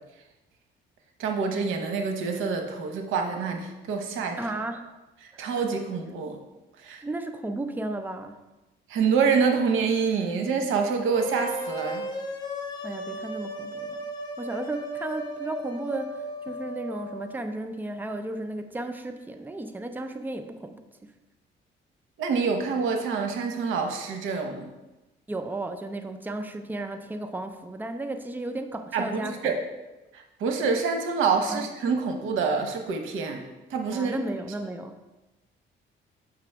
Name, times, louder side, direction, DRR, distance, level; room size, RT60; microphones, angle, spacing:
voice 1, 1.2-4.4 5.2-6.4 6.8-7.0 8.9-12.1 22.2-24.7 28.9-29.6 30.1-33.4 33.7-34.1, right 5 dB, 85° right, 5 dB, 0.9 m, -26 dB
voice 2, 4.4-4.9 5.3-5.6 7.0-8.4 12.8-14.0 14.4-21.1 25.3-29.5 31.5-31.6 33.9-35.0, right 2 dB, 10° right, 7 dB, 0.5 m, -34 dB
sound 1, 11.1-17.3, right 1 dB, 20° left, 1.1 m, -35 dB
6.9 x 5.8 x 3.4 m, 1.1 s
cardioid pair, 90°, 20 cm